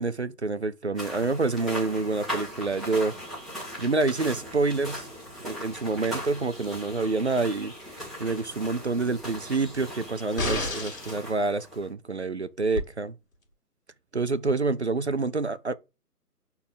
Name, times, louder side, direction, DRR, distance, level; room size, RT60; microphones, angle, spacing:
voice 1, 0.0-3.1 3.8-5.1 5.4-13.1 14.1-15.7, right 3 dB, 45° right, 0.4 m, -27 dB
sound 1, 1.0-11.9, equal, ahead, 1.5 m, -39 dB
sound 2, 10.4-11.2 12.8-12.9, left 2 dB, 55° left, 2.2 m, -29 dB
6.4 x 4.1 x 3.9 m
figure-of-eight pair, 145°, 48 cm